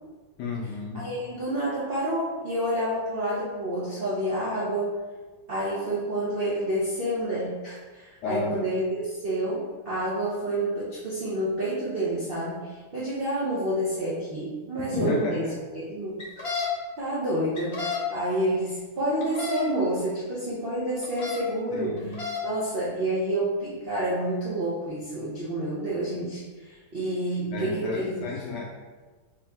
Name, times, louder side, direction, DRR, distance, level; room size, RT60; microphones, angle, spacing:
voice 1, 0.4-1.1 8.2-8.7 14.9-15.6 21.7-22.2 27.5-28.6, left 3 dB, 75° left, -3 dB, 1.0 m, -31 dB
voice 2, 0.9-4.9 5.5-15.4 15.7-16.5 17.0-22.0 22.4-28.2, right 1 dB, 70° right, -9 dB, 0.5 m, -29 dB
sound 1, 16.2-16.7 17.5-18.0 19.2-19.6 21.0-21.4 22.0-22.4, left 5 dB, 40° left, 1.0 m, -31 dB
3.5 x 2.7 x 3.5 m, 1.3 s
omnidirectional pair, 2.2 m